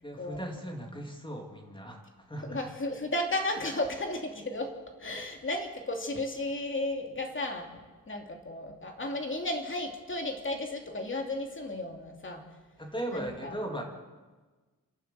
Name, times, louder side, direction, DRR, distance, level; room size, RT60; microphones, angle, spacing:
voice 1, 0.0-2.0 2.3-2.6 12.8-13.8, right 1 dB, 15° left, 1 dB, 2.6 m, -37 dB
voice 2, 2.4-4.7 5.0-12.4 13.1-13.6, left 1 dB, 35° left, 3 dB, 2.6 m, -34 dB
28.5 x 12.0 x 8.1 m, 1.3 s
wide cardioid pair, 150°, 34 cm